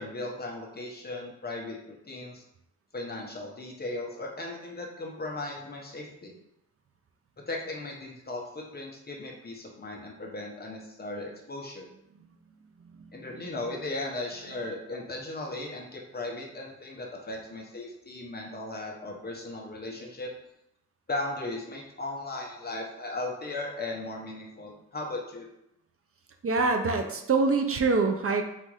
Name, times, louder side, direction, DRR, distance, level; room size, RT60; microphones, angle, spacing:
voice 1, 0.0-2.4 2.9-6.3 7.5-11.9 13.1-20.3 21.1-25.5, left 2 dB, 30° left, -1 dB, 0.8 m, -37 dB
voice 2, 26.4-28.4, right 4 dB, 50° right, 4 dB, 0.5 m, -25 dB
4.1 x 2.5 x 4.7 m, 0.82 s
wide cardioid pair, 170°, 30 cm